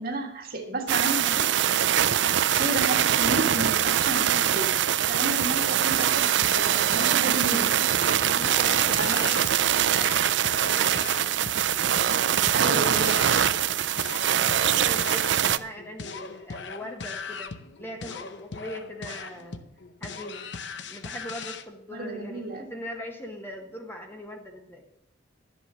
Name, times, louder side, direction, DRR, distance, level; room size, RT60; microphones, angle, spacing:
voice 1, 0.0-1.5 2.4-4.7 5.1-7.7 9.0-9.3 12.5-13.3 21.9-22.6, right 2 dB, 50° right, 2 dB, 1.7 m, -32 dB
sound 1, 0.9-15.6, right 10 dB, 65° right, 0.4 m, -23 dB
sound 2, 5.4-21.7, left 5 dB, 65° left, 0.7 m, -39 dB
voice 2, 8.3-9.5 10.0-10.2 10.7-11.3 14.5-17.5 17.8-19.7 20.0-20.4 20.9-24.8, equal, 10° left, 2 dB, 1.0 m, -40 dB
12.0 x 8.0 x 6.2 m, 0.96 s
head